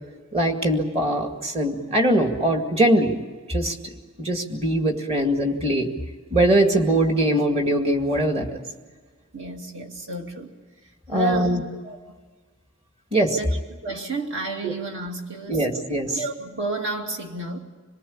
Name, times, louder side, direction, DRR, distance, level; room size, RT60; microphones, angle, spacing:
voice 1, 0.3-3.2 3.5-3.7 4.2-5.9 6.3-8.5 11.1-11.6 13.1-13.4 14.6-14.7 15.5-16.2, right 1 dB, 25° right, 4 dB, 2.2 m, -21 dB
voice 2, 9.3-10.5 11.1-12.0 13.4-15.8 16.1-17.6, right 2 dB, 55° right, 2 dB, 2.7 m, -31 dB
26.5 x 19.5 x 8.7 m, 1.4 s
head